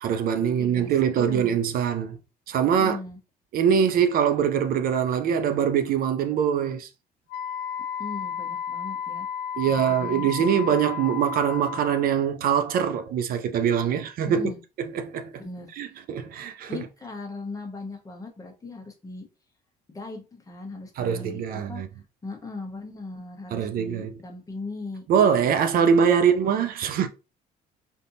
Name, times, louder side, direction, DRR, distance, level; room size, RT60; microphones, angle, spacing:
voice 1, 0.0-2.2 2.5-3.0 3.5-6.9 9.6-14.5 14.9-15.4 15.8-16.9 21.0-21.9 23.5-24.2 25.1-27.1, right 8 dB, 60° right, 0.4 m, -23 dB
voice 2, 0.6-1.6 2.8-3.2 8.0-9.3 9.7-10.6 14.3-14.6 15.4-16.0 16.7-19.2 19.9-21.8 22.2-25.0 25.8-26.6, left 3 dB, 20° left, 1.0 m, -39 dB
Wind instrument woodwind instrument, 7.3-12.1, left 8 dB, 75° left, 0.4 m, -33 dB
3.4 x 2.7 x 2.6 m
cardioid pair, 110°, 17 cm